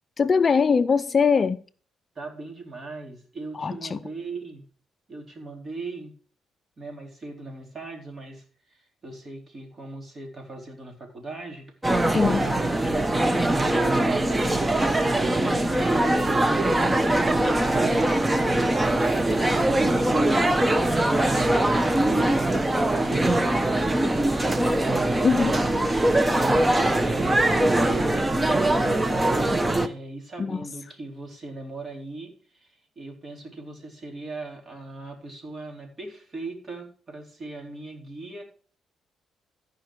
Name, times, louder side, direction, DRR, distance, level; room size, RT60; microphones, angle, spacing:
voice 1, 0.2-1.6 3.6-4.0 12.1-12.5 25.2-25.6 30.4-30.6, left 5 dB, 35° left, 0.4 m, -21 dB
voice 2, 2.2-4.6 5.1-6.1 6.8-11.6 12.4-18.1 18.8-19.7 20.0-25.3 25.8-28.2 28.6-29.4 29.8-38.4, right 3 dB, 35° right, 4.0 m, -39 dB
sound 1, 11.8-29.9, right 1 dB, 15° right, 0.9 m, -22 dB
14.0 x 5.2 x 6.2 m
cardioid pair, 90°, 0 cm